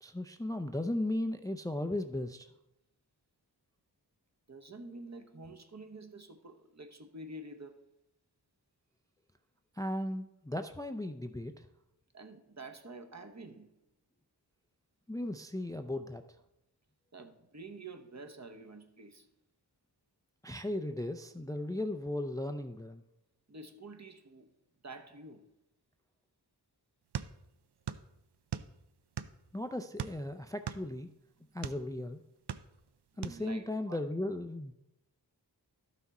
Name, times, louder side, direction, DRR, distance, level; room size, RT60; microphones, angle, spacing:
voice 1, 0.0-2.5 9.8-11.7 15.1-16.2 20.4-23.0 29.5-31.1 31.5-32.2 33.2-34.7, left 1 dB, 10° left, 0.4 m, -36 dB
voice 2, 4.5-7.8 12.1-13.7 17.1-19.3 23.5-24.5 24.8-25.5 33.1-34.0, right 2 dB, 40° right, 0.9 m, -48 dB
sound 1, 27.1-28.1 28.3-29.5 30.0-31.8 32.3-32.9 33.2-33.4, right 9 dB, 70° right, 0.5 m, -39 dB
12.0 x 5.9 x 4.2 m
wide cardioid pair, 55°, 42 cm